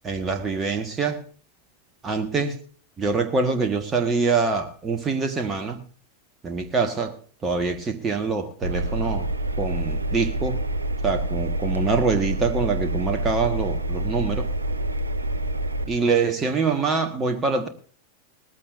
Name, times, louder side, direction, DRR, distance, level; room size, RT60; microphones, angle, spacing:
voice 1, 0.0-1.2 2.0-2.6 3.0-5.8 6.4-9.3 9.6-10.6 11.0-14.5 15.9-17.7, right 4 dB, 20° right, 1.7 m, -25 dB
Engine, 8.6-15.9, right 1 dB, 75° right, 0.9 m, -27 dB
19.5 x 15.0 x 2.7 m
figure-of-eight pair, 90°, 0 cm